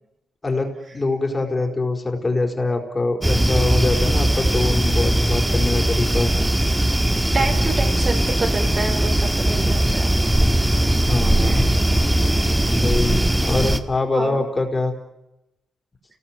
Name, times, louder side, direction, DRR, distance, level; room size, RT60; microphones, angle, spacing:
voice 1, 0.4-6.3 9.5-9.6 11.1-11.7 12.8-14.9, left 3 dB, 25° left, 2 dB, 4.6 m, -24 dB
sound 1, 3.2-13.8, right 1 dB, 10° right, 1.8 m, -19 dB
voice 2, 7.3-10.1 11.4-11.6 14.1-14.5, right 3 dB, 50° right, 3 dB, 4.9 m, -28 dB
29.5 x 19.5 x 7.6 m, 0.91 s
cardioid pair, 85°, 0 cm